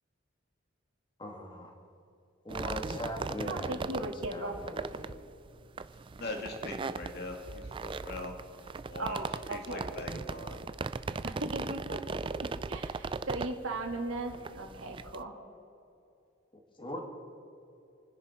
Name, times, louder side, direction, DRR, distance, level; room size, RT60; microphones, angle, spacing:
voice 1, 1.2-1.7 2.4-5.2 16.5-17.0, left 1 dB, 25° left, 1 dB, 2.3 m, -40 dB
sound 1, 2.5-15.2, right 4 dB, 25° right, 0.3 m, -38 dB
voice 2, 3.4-4.5 9.0-9.9 11.2-15.4, right 2 dB, 75° right, 2 dB, 2.4 m, -38 dB
voice 3, 6.2-10.6, left 2 dB, 55° left, 2 dB, 2.3 m, -42 dB
28.0 x 10.5 x 4.4 m, 2.7 s
head